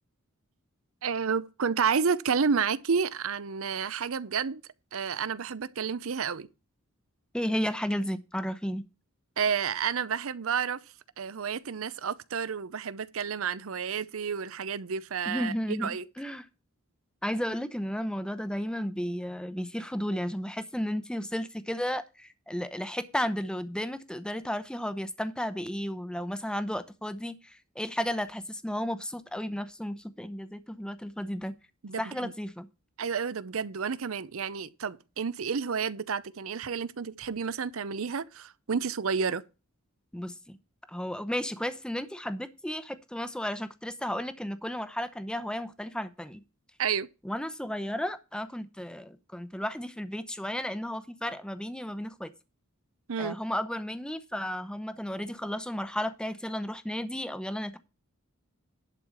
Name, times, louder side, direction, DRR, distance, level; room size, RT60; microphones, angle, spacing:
voice 1, 1.0-4.6 4.9-6.5 9.4-10.8 11.2-16.0 31.8-32.3 33.0-39.4 46.8-47.1 53.1-53.4, right 6 dB, 70° right, 0.6 m, -30 dB
voice 2, 7.3-8.9 15.3-16.5 17.2-31.6 32.0-32.7 40.1-40.6 40.9-46.4 47.2-52.3 53.2-57.8, equal, 5° left, 0.7 m, -33 dB
11.0 x 4.8 x 7.1 m
head